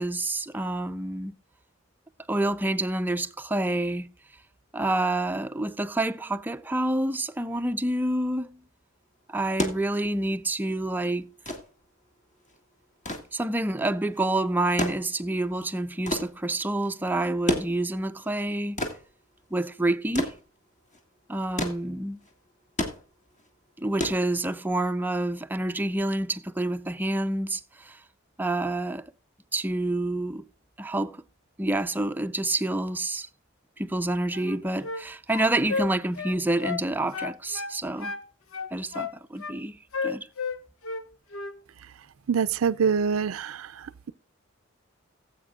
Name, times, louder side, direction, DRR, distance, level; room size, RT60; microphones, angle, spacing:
voice 1, 0.0-1.3 2.3-4.1 4.7-8.6 9.3-11.3 13.3-18.8 19.5-20.3 21.3-22.2 23.8-28.0 28.4-29.0 29.5-30.4 30.8-31.2 31.6-33.3 33.8-38.1 38.7-39.8 40.0-40.3, right 1 dB, 10° right, 0.5 m, -28 dB
sound 1, 9.5-24.9 26.1-26.2, left 1 dB, 35° left, 1.8 m, -34 dB
sound 2, 34.3-35.0 35.3-36.8 37.1-38.2 38.5-39.6 39.9-41.0 41.3-41.6, left 5 dB, 90° left, 1.0 m, -33 dB
voice 2, 42.3-43.7, right 6 dB, 80° right, 0.4 m, -24 dB
18.0 x 8.0 x 2.4 m
head